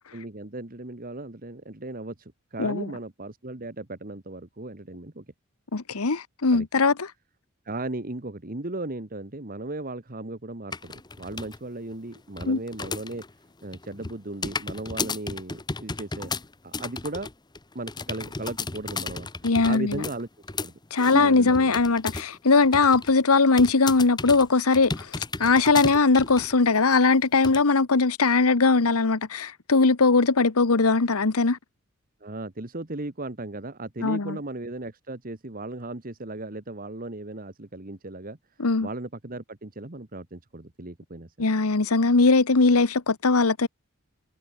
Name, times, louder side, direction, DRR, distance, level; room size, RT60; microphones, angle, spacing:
voice 1, 0.1-5.2 6.5-6.7 7.6-13.2 13.6-16.3 16.6-17.3 17.7-19.3 19.6-20.3 20.6-20.7 21.1-21.8 32.2-38.4 38.8-41.3, right 2 dB, 40° right, 1.6 m, -36 dB
voice 2, 5.7-7.1 12.4-12.6 19.4-20.0 20.9-31.6 34.0-34.4 38.6-38.9 41.4-43.7, left 3 dB, 85° left, 1.1 m, -20 dB
sound 1, 10.7-11.6 11.9-13.3 13.6-22.4 22.6-23.1 23.6-26.6 26.9-27.0 27.4-27.6, left 3 dB, 20° left, 0.9 m, -34 dB
head